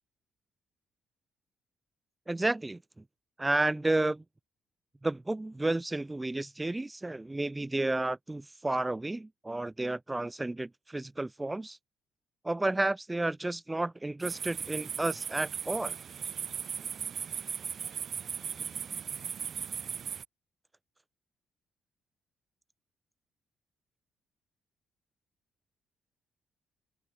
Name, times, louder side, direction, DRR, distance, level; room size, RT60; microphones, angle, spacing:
voice 1, 2.3-3.0 3.4-4.2 5.0-11.8 12.4-16.0, right 2 dB, 15° right, 0.7 m, -31 dB
sound 1, 14.2-20.2, right 7 dB, 55° right, 0.6 m, -37 dB
open air
cardioid pair, 90°, 0 cm